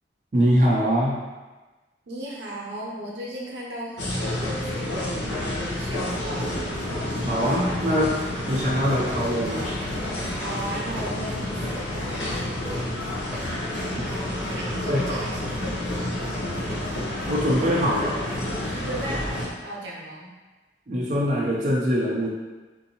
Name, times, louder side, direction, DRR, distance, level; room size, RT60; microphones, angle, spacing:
voice 1, 0.3-1.1 7.2-9.7 14.5-15.2 17.3-18.2 20.9-22.3, equal, 40° right, -6 dB, 0.5 m, -23 dB
voice 2, 2.1-6.7 10.3-12.1 13.8-16.1 16.4-16.8 18.8-20.3, equal, 75° right, -4 dB, 0.8 m, -36 dB
sound 1, 4.0-19.5, left 1 dB, 90° left, 0.8 m, -30 dB
sound 2, 6.1-19.4, left 1 dB, 10° right, 0.9 m, -39 dB
3.7 x 2.6 x 2.8 m, 1.2 s
head